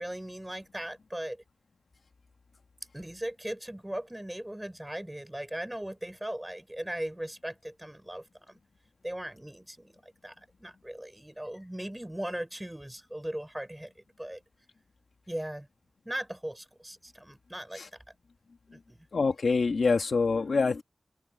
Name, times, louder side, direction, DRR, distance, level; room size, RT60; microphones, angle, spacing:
voice 1, 0.0-1.4 2.9-8.6 9.0-13.9 14.2-14.4 15.3-15.7 16.1-17.8 18.7-19.1, right 1 dB, 10° right, 5.4 m, -38 dB
voice 2, 19.1-20.8, left 4 dB, 80° left, 2.5 m, -25 dB
wide cardioid pair, 80°, 0 cm